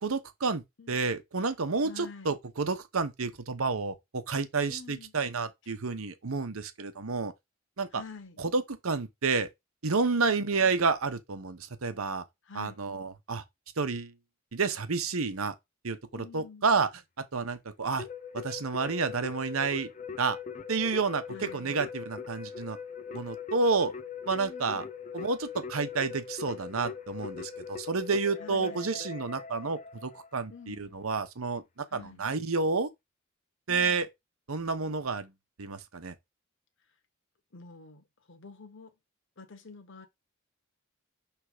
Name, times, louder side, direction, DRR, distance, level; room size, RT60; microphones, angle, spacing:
voice 1, 0.0-7.3 7.8-8.0 8.4-9.5 9.8-12.2 12.5-13.4 13.8-14.1 14.5-15.5 15.8-16.9 17.3-18.1 18.3-19.9 20.2-20.4 20.7-22.8 23.1-23.9 24.3-24.8 25.1-32.9 33.7-34.1 34.5-35.3 35.6-36.1, right 4 dB, 80° right, 0.9 m, -30 dB
voice 2, 1.8-2.3 4.7-5.1 7.9-8.4 12.4-12.8 16.1-16.7 21.3-21.8 24.4-24.9 28.4-28.9 30.5-30.8 31.9-32.2 33.7-34.0 37.5-38.9 39.4-40.1, left 4 dB, 60° left, 1.1 m, -48 dB
Keyboard (musical), 18.0-30.4, left 6 dB, 35° left, 0.6 m, -41 dB
6.1 x 3.5 x 4.9 m
head